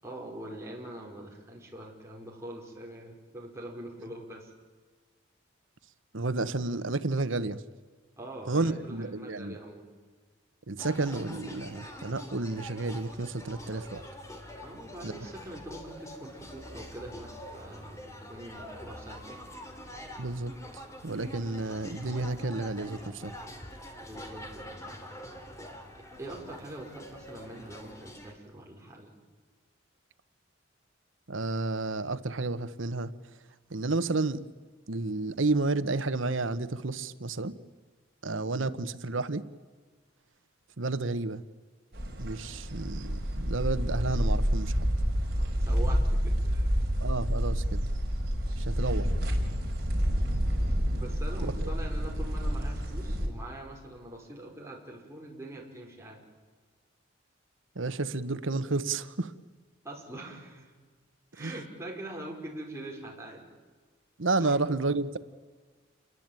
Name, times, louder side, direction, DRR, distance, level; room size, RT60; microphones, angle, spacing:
voice 1, 0.0-4.5 8.2-9.9 14.6-19.4 24.0-24.8 26.2-29.1 38.3-38.5 45.4-46.9 50.9-56.2 59.8-60.7 61.3-63.4 64.4-64.6, right 1 dB, 15° right, -1 dB, 5.5 m, -43 dB
voice 2, 6.1-7.6 8.4-9.6 10.7-14.0 15.0-15.3 20.2-23.3 31.3-33.1 33.7-34.4 34.9-37.6 38.2-39.4 40.8-41.4 42.2-44.9 47.0-47.9 48.6-49.1 51.6-51.7 57.7-59.3 61.4-61.5 64.2-65.2, right 3 dB, 80° right, 13 dB, 1.2 m, -31 dB
sound 1, 10.8-28.3, equal, 15° left, 3.0 m, -45 dB
sound 2, 41.9-53.3, equal, 50° right, 5.4 m, -28 dB
29.0 x 22.0 x 9.1 m, 1.4 s
head